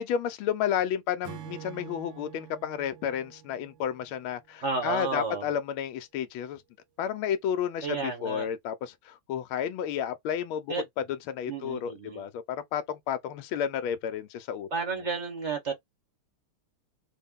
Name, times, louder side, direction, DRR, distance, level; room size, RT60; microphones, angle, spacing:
voice 1, 0.0-6.6 7.0-10.7 11.3-14.7, left 9 dB, 75° left, 1.4 m, -31 dB
Acoustic guitar / Strum, 1.2-4.7, right 10 dB, 70° right, 1.3 m, -46 dB
voice 2, 4.6-5.5 7.8-8.5 10.7-10.8 11.5-12.2 14.7-15.7, right 4 dB, 50° right, 0.8 m, -31 dB
4.1 x 2.2 x 3.5 m
omnidirectional pair, 2.4 m